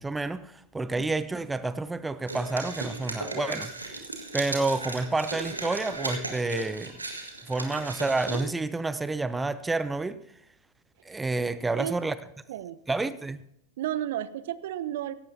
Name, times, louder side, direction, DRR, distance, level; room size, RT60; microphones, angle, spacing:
voice 1, 0.0-4.1 4.3-6.9 7.4-10.2 11.0-12.2 12.9-13.4, right 3 dB, 10° right, 0.5 m, -29 dB
sound 1, 2.3-8.4, right 2 dB, 80° right, 1.8 m, -36 dB
voice 2, 13.8-15.1, right 12 dB, 55° right, 0.6 m, -32 dB
17.0 x 16.0 x 2.8 m
figure-of-eight pair, 90°, 0 cm